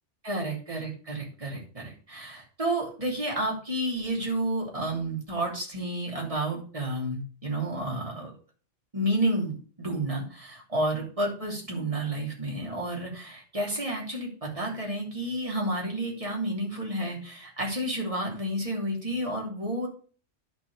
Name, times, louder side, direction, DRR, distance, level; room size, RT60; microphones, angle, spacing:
voice 1, 0.2-8.3 8.9-19.9, right 1 dB, 25° right, -2 dB, 3.0 m, -31 dB
10.5 x 4.3 x 6.6 m, 0.40 s
omnidirectional pair, 1.3 m